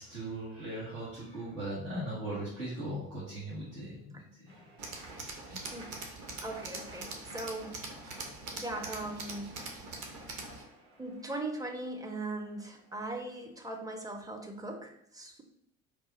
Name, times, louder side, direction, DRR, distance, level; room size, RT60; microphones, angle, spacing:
voice 1, 0.0-4.7 5.2-5.6, right 1 dB, 80° right, -10 dB, 1.3 m, -39 dB
sound 1, 4.5-14.1, right 2 dB, 65° right, 1.4 m, -57 dB
Tools, 4.8-10.6, right 3 dB, 45° right, 0.9 m, -43 dB
voice 2, 6.4-7.8 8.5-9.9 11.0-15.4, right 2 dB, 10° right, 4 dB, 0.5 m, -39 dB
3.3 x 2.4 x 4.0 m, 0.74 s
figure-of-eight pair, 55°, 41 cm